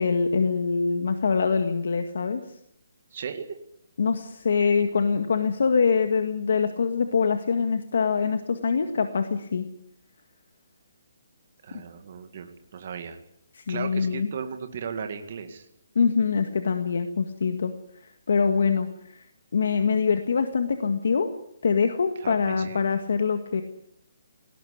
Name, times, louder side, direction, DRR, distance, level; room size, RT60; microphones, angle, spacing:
voice 1, 0.0-2.4 4.0-9.7 13.6-14.3 16.0-17.7 18.0-19.2 19.5-21.3 21.6-23.6, left 5 dB, 55° left, 7 dB, 1.8 m, -24 dB
voice 2, 3.1-3.5 11.6-13.2 13.7-15.7 22.2-22.8, right 6 dB, 35° right, 6 dB, 2.1 m, -36 dB
18.5 x 18.5 x 9.8 m, 0.72 s
hypercardioid pair, 180°, 0 cm